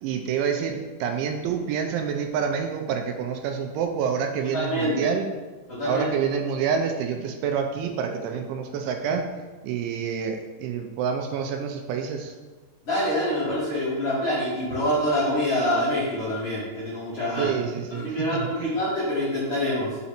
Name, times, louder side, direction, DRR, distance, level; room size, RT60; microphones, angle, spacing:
voice 1, 0.0-5.3 5.8-9.3 9.6-12.4 17.4-18.7, right 7 dB, 85° right, 5 dB, 2.9 m, -27 dB
voice 2, 4.5-5.1 5.7-6.1 12.8-17.5 17.9-20.0, equal, 40° left, -10 dB, 2.3 m, -26 dB
5.9 x 5.2 x 4.2 m, 1.3 s
omnidirectional pair, 5.4 m